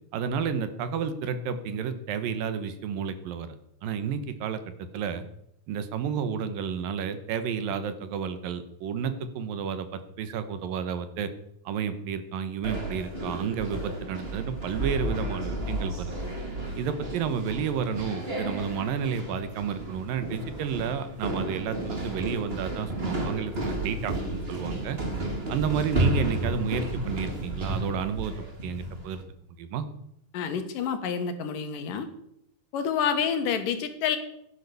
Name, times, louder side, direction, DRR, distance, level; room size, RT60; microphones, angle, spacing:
voice 1, 0.1-4.6 4.9-5.2 5.7-11.3 11.7-16.1 16.8-25.0 25.5-28.3 28.6-29.3 29.6-29.9, right 7 dB, 75° right, 11 dB, 2.9 m, -31 dB
sound 1, 12.6-29.1, right 1 dB, 20° right, 2.3 m, -32 dB
voice 2, 30.3-32.1 32.7-34.2, left 7 dB, 70° left, 8 dB, 3.0 m, -28 dB
16.0 x 10.5 x 6.9 m, 0.76 s
omnidirectional pair, 4.1 m